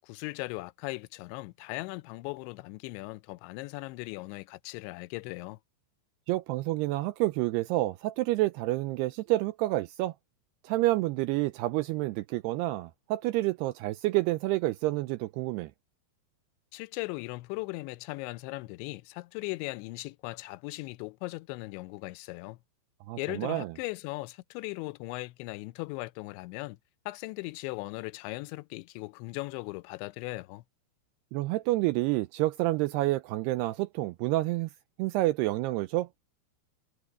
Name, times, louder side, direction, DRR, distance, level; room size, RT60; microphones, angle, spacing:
voice 1, 0.0-5.6 16.7-22.6 23.2-26.8 27.1-30.6, left 22 dB, 85° left, 2.9 m, -38 dB
voice 2, 6.3-10.1 10.6-15.7 23.1-23.7 31.3-34.7 35.0-36.1, right 18 dB, 80° right, 2.4 m, -28 dB
omnidirectional pair, 5.2 m